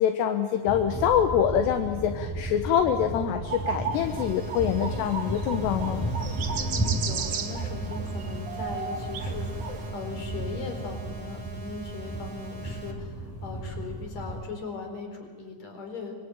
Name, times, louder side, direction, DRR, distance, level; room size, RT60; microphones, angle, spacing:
voice 1, 0.0-6.0, left 9 dB, 75° left, 7 dB, 3.1 m, -25 dB
sound 1, 0.7-14.4, right 1 dB, 5° right, 6.5 m, -34 dB
sound 2, 3.5-9.9, right 6 dB, 60° right, 1.5 m, -35 dB
sound 3, 3.9-12.9, right 3 dB, 40° right, 4.2 m, -44 dB
voice 2, 6.5-13.1 13.4-16.1, left 4 dB, 40° left, 5 dB, 4.8 m, -39 dB
25.0 x 23.0 x 9.0 m, 1.5 s
omnidirectional pair, 5.2 m